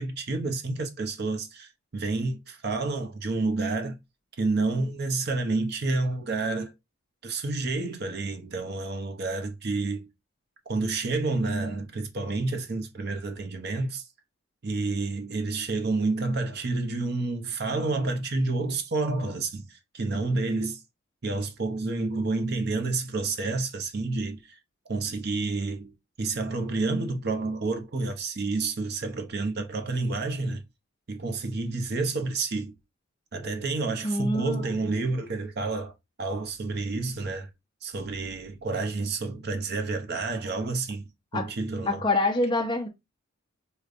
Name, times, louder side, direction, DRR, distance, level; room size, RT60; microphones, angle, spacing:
voice 1, 0.0-4.0 4.4-6.7 7.2-10.0 10.7-14.0 14.6-20.8 21.2-24.6 24.9-30.6 31.1-32.7 33.3-35.9 36.2-37.5 37.8-41.1 41.3-42.0, right 3 dB, 50° right, 0.6 m, -29 dB
voice 2, 34.0-34.9 41.3-41.5 41.9-42.9, left 2 dB, 20° left, 0.5 m, -26 dB
4.9 x 2.2 x 2.4 m
head